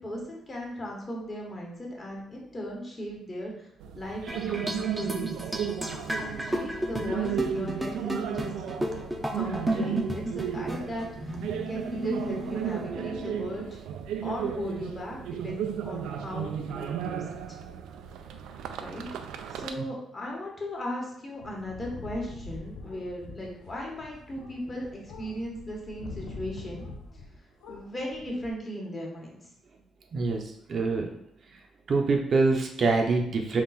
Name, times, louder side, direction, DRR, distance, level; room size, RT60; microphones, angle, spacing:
voice 1, 0.0-3.7 3.9-5.4 6.2-8.5 9.3-11.4 11.7-13.8 14.2-17.2 18.8-19.1 19.5-26.9 27.7-29.4, equal, 30° left, -2 dB, 1.3 m, -37 dB
sound 1, 3.8-19.7, right 9 dB, 85° right, 0.3 m, -34 dB
sound 2, 4.3-13.7, equal, 10° right, 0.6 m, -34 dB
sound 3, 21.4-27.3 27.6-28.5, left 3 dB, 85° left, 0.7 m, -44 dB
voice 2, 30.1-31.1 31.9-33.6, right 3 dB, 50° right, 2 dB, 0.6 m, -25 dB
3.6 x 2.4 x 4.1 m, 0.73 s
cardioid pair, 90°, 0 cm